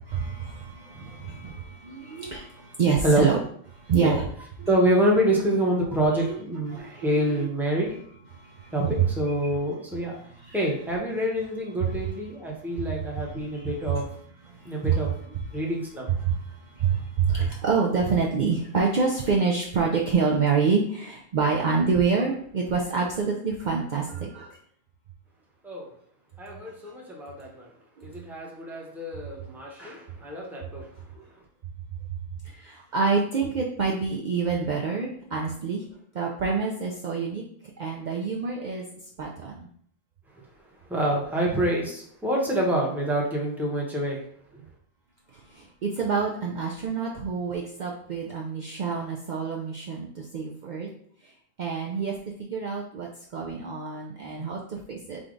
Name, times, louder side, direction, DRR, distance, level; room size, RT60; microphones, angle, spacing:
voice 1, 0.1-3.4 3.7-4.3 4.6-4.7 6.1-6.4 6.7-7.5 8.3-9.1 10.1-10.6 11.8-12.1 13.0-14.0 14.4-15.7 16.1-24.6 28.0-28.1 32.1-32.2 32.4-35.9 36.1-37.4 37.8-38.9 39.2-39.7 45.3-50.9 51.2-51.3 51.6-52.1 52.4-55.2, right 5 dB, 55° right, -1 dB, 0.6 m, -27 dB
voice 2, 0.9-1.4 3.0-3.3 4.0-4.1 4.7-7.9 8.7-10.2 10.5-14.1 14.6-16.1 25.6-25.9 26.4-27.7 28.0-31.2 40.9-44.2 44.5-44.6, right 1 dB, ahead, -2 dB, 0.8 m, -27 dB
5.0 x 2.3 x 3.8 m, 0.64 s
omnidirectional pair, 1.1 m